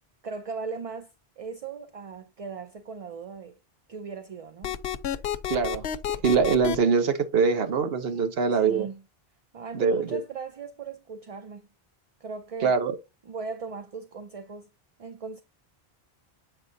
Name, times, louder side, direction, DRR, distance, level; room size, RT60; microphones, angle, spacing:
voice 1, 0.2-3.6 3.9-4.8 8.1-9.0 9.5-11.7 12.2-12.7 13.3-14.7 15.0-15.4, right 5 dB, 45° right, 0.6 m, -38 dB
sound 1, 4.6-6.8, left 10 dB, 80° left, 0.9 m, -30 dB
voice 2, 5.5-5.9 6.2-8.9 9.7-10.2 12.6-13.0, right 5 dB, 70° right, 1.1 m, -23 dB
7.9 x 5.3 x 2.6 m
omnidirectional pair, 1.0 m